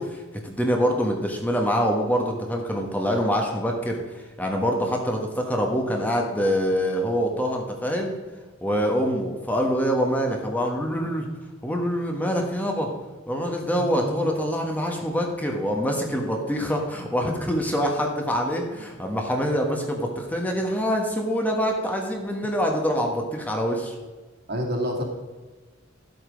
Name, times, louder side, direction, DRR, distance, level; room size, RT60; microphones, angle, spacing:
voice 1, 0.0-4.0 4.4-8.2 8.6-11.3 11.6-12.9 13.3-23.9, equal, 10° left, 1 dB, 1.3 m, -25 dB
voice 2, 13.8-14.3 24.5-25.0, equal, 55° right, 0 dB, 2.3 m, -29 dB
12.5 x 8.0 x 5.2 m, 1.3 s
head